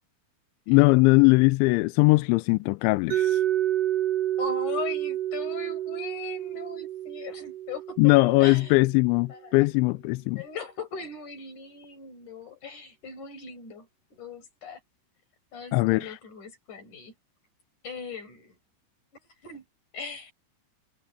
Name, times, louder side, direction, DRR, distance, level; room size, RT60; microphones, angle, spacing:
voice 1, 0.7-3.4 8.0-10.4 15.7-16.2, left 24 dB, 85° left, 2.7 m, -20 dB
Mallet percussion, 3.1-8.9, right 12 dB, 70° right, 5.0 m, -29 dB
voice 2, 4.4-8.8 9.3-9.5 10.4-14.8 15.5-17.1 17.8-18.6 19.4-19.6 19.9-20.3, left 4 dB, 40° left, 7.0 m, -39 dB
omnidirectional pair, 5.7 m